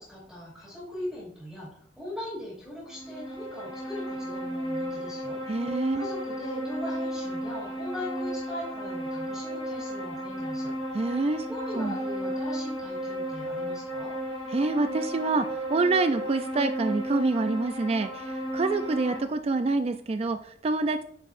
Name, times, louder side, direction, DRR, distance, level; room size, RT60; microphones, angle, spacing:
voice 1, 0.0-5.4 5.9-10.7 11.5-14.1, left 1 dB, ahead, -9 dB, 3.0 m, -40 dB
sound 1, 2.9-19.2, equal, 30° left, 2.7 m, -34 dB
voice 2, 5.5-6.1 10.9-11.5 11.7-12.0 14.5-21.0, right 3 dB, 35° right, 9 dB, 0.4 m, -27 dB
9.0 x 5.2 x 2.5 m, 0.62 s
head